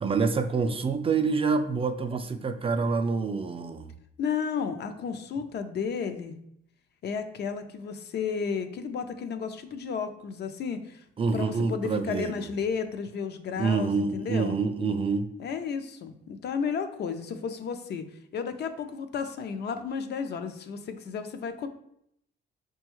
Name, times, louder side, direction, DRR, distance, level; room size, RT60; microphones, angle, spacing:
voice 1, 0.0-3.9 11.2-12.3 13.6-15.3, right 4 dB, 30° right, 8 dB, 0.3 m, -27 dB
voice 2, 4.2-6.3 7.0-11.0 11.3-14.6 15.4-18.0 18.3-21.7, left 6 dB, 60° left, 8 dB, 0.5 m, -33 dB
5.2 x 2.3 x 3.0 m, 0.72 s
cardioid pair, 90°, 20 cm